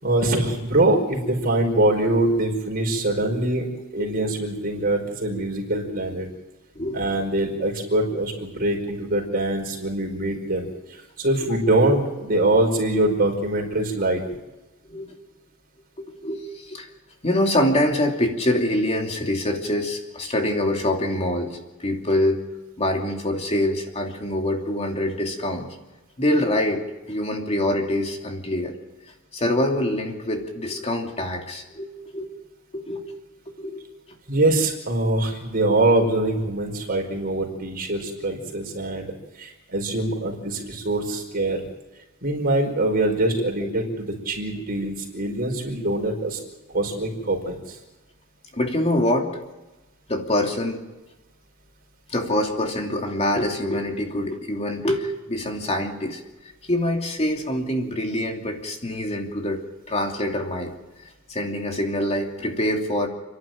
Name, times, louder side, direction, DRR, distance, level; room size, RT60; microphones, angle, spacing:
voice 1, 0.0-6.3 6.9-14.2 34.3-39.1 39.4-41.6 42.2-46.4 46.7-47.7, right 1 dB, 45° right, 2 dB, 5.0 m, -23 dB
voice 2, 16.0-16.9 17.2-22.4 22.8-25.7 26.2-26.8 27.1-28.7 29.3-32.4 32.7-33.1 33.5-33.8 43.6-43.7 48.5-49.4 50.1-50.8 52.1-56.2 56.7-60.7 61.3-63.1, left 1 dB, 30° left, 2 dB, 2.9 m, -25 dB
30.0 x 11.5 x 9.3 m, 1.1 s
head